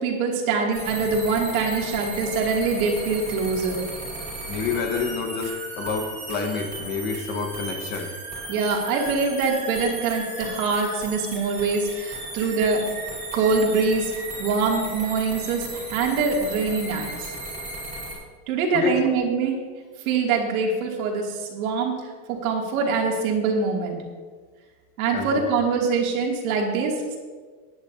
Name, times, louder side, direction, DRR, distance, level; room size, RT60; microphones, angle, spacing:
voice 1, 0.0-3.8 8.5-12.8 13.3-14.1 14.4-17.1 18.5-19.6 20.0-21.9 22.3-24.0 25.0-27.2, right 4 dB, 70° right, 0 dB, 2.8 m, -24 dB
sound 1, 0.7-18.1, right 2 dB, 15° right, 4.3 m, -35 dB
voice 2, 4.5-8.1 12.4-12.5 18.7-19.0 25.1-25.4, left 5 dB, 25° left, 4 dB, 0.8 m, -28 dB
20.0 x 10.0 x 2.8 m, 1.5 s
supercardioid pair, 180°, 43 cm